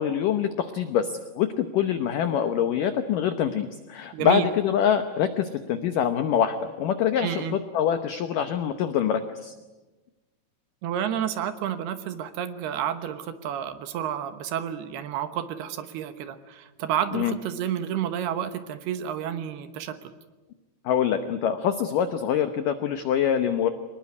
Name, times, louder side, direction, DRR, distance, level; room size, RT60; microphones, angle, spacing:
voice 1, 0.0-9.5 17.1-17.3 20.8-23.7, left 8 dB, 80° left, 9 dB, 1.9 m, -25 dB
voice 2, 4.1-4.5 7.2-7.6 10.8-20.1, right 10 dB, 70° right, 10 dB, 2.9 m, -30 dB
24.5 x 20.0 x 9.7 m, 1.2 s
omnidirectional pair, 5.2 m